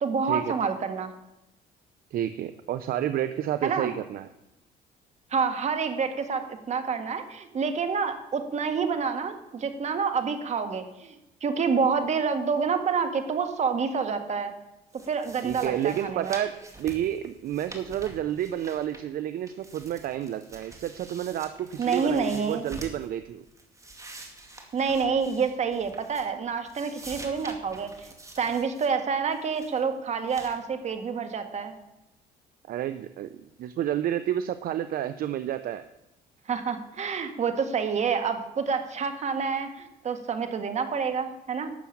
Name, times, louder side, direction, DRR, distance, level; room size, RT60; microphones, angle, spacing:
voice 1, 0.0-1.1 3.6-3.9 5.3-11.1 11.4-14.5 15.1-16.3 21.8-22.7 24.7-28.1 28.4-31.7 36.5-41.7, right 5 dB, 40° right, 7 dB, 1.8 m, -28 dB
voice 2, 2.1-4.3 15.4-23.4 32.7-33.3 33.6-35.9, right 11 dB, 60° right, 12 dB, 0.7 m, -30 dB
sound 1, 14.9-19.2 19.5-23.1 23.5-26.4 26.7-28.9 29.3-29.8 30.3-30.6, right 2 dB, 20° right, 2.4 m, -46 dB
12.5 x 7.1 x 8.6 m, 0.93 s
cardioid pair, 110°, 17 cm